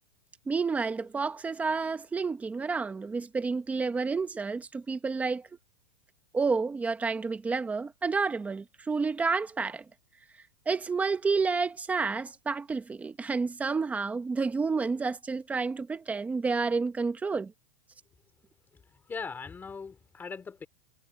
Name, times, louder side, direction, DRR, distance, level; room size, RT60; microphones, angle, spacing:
voice 1, 0.5-5.5 6.3-9.8 10.7-17.5, right 4 dB, 10° right, 1.1 m, -30 dB
voice 2, 18.7-20.7, left 5 dB, 10° left, 3.3 m, -40 dB
supercardioid pair, 165°, 18 cm